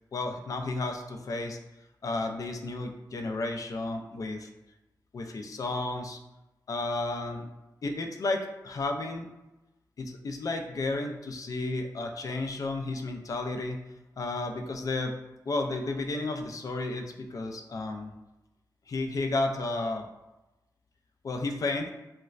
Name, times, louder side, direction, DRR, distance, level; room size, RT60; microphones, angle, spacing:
voice 1, 0.1-1.6 2.0-4.5 5.1-6.2 6.7-7.5 7.8-9.3 10.0-13.8 14.2-15.1 15.5-18.1 18.9-20.1 21.2-21.9, left 2 dB, 50° left, 4 dB, 0.3 m, -32 dB
4.0 x 2.1 x 2.3 m, 1.0 s
wide cardioid pair, 155°, 7 cm